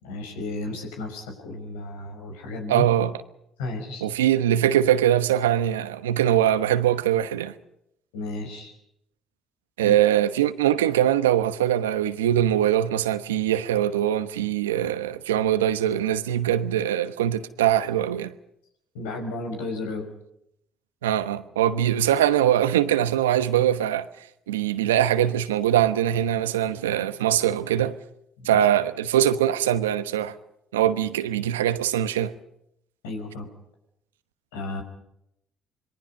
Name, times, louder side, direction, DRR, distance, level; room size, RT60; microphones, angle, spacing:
voice 1, 0.0-2.9 3.6-4.1 8.1-8.8 9.8-10.0 18.9-20.1 28.4-28.6 33.0-33.5 34.5-34.8, left 2 dB, 80° left, 5.4 m, -33 dB
voice 2, 2.7-3.1 4.0-7.5 9.8-18.3 21.0-24.1 24.5-28.0 28.4-30.3 30.7-32.3, right 11 dB, 85° right, 1.0 m, -22 dB
26.5 x 22.5 x 5.4 m
hypercardioid pair, 50°, 0 cm